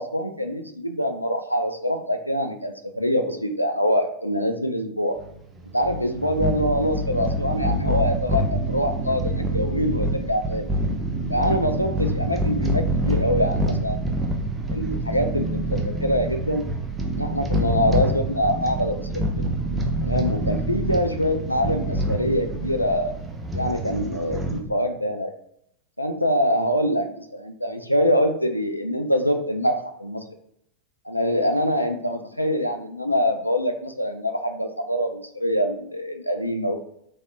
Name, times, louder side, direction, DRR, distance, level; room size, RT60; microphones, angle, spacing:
voice 1, 0.0-5.2 5.7-10.7 11.3-14.1 14.7-16.6 17.1-19.3 20.0-23.1 23.5-25.3 26.0-30.2 31.1-36.8, equal, 90° left, 6 dB, 0.3 m, -24 dB
sound 1, 5.2-24.6, right 1 dB, 15° right, 0.5 m, -26 dB
3.3 x 2.5 x 2.5 m, 0.71 s
figure-of-eight pair, 90°, 0 cm